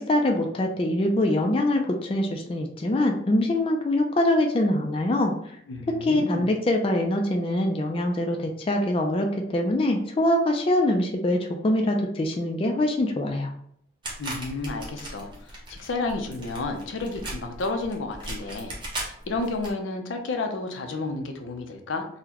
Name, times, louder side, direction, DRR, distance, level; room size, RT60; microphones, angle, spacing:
voice 1, 0.0-5.3 5.9-13.5, left 1 dB, 30° left, 2 dB, 0.3 m, -24 dB
voice 2, 5.7-6.5 14.2-22.1, left 3 dB, 85° left, 5 dB, 0.5 m, -31 dB
sound 1, 14.0-19.7, right 1 dB, 25° right, 0.8 m, -38 dB
3.8 x 2.1 x 2.9 m, 0.68 s
head